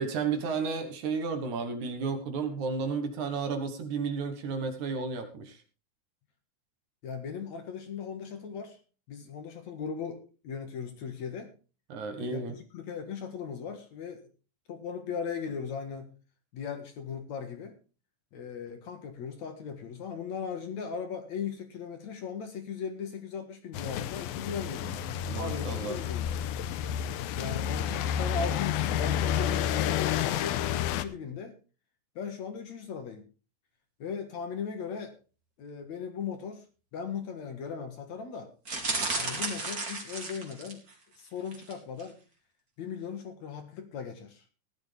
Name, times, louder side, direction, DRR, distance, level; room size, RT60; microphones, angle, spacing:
voice 1, 0.0-5.6 11.9-12.6 25.2-26.0, right 5 dB, 60° right, 7 dB, 2.6 m, -32 dB
voice 2, 7.0-8.8 9.1-11.5 12.2-14.3 14.7-16.1 16.5-17.8 18.3-25.0 25.4-26.3 27.4-31.6 32.2-33.2 34.0-35.1 35.6-36.6 36.9-38.5 39.1-40.9 41.2-42.2 42.8-44.4, left 6 dB, 55° left, 6 dB, 2.6 m, -38 dB
sound 1, 23.7-31.1, left 9 dB, 85° left, 2.6 m, -30 dB
sound 2, 38.6-40.9 41.5-41.7 42.0-42.1, right 3 dB, 25° right, 2.8 m, -33 dB
16.0 x 11.5 x 3.4 m, 0.34 s
omnidirectional pair, 4.2 m